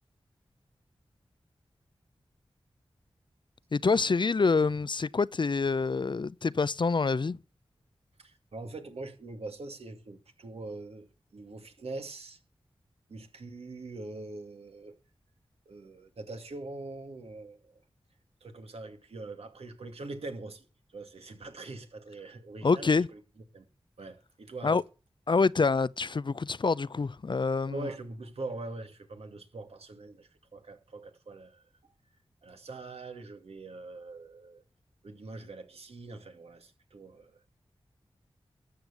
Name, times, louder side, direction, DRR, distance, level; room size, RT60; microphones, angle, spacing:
voice 1, 3.7-7.4 22.6-23.1 24.6-24.8 25.3-27.9, left 4 dB, 50° left, 0.6 m, -26 dB
voice 2, 8.2-12.4 13.1-14.9 15.7-17.8 18.4-20.7 20.9-23.2 23.5-23.6 24.0-24.8 27.7-31.6 32.4-34.6 35.0-37.4, right 2 dB, 85° right, 2.4 m, -43 dB
13.5 x 7.8 x 7.1 m
cardioid pair, 40°, 10 cm